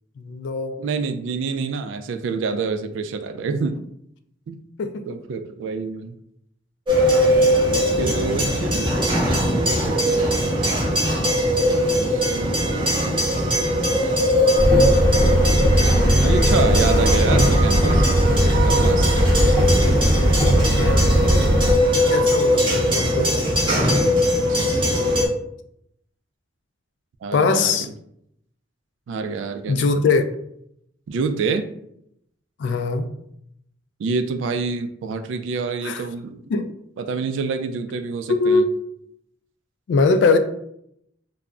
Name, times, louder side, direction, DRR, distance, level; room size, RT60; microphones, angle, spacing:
voice 1, 0.2-0.8 4.8-5.1 11.7-12.0 20.5-21.5 21.9-23.4 27.3-27.9 29.7-30.2 32.6-33.1 35.8-36.0 36.5-36.7 38.3-38.7 39.9-40.4, left 4 dB, 70° left, 9 dB, 0.3 m, -22 dB
voice 2, 0.8-3.8 4.5-4.6 5.1-6.2 7.7-8.9 9.3-10.5 11.9-13.2 13.5-14.4 16.2-18.1 18.6-19.1 24.5-24.8 27.2-27.7 29.1-30.0 31.1-31.6 34.0-36.4 37.0-38.6, right 4 dB, 85° right, 9 dB, 0.3 m, -27 dB
sound 1, 6.9-25.3, equal, 25° right, 0.8 m, -20 dB
sound 2, 14.6-21.7, equal, 15° left, 0.6 m, -18 dB
2.2 x 2.0 x 3.6 m, 0.73 s
head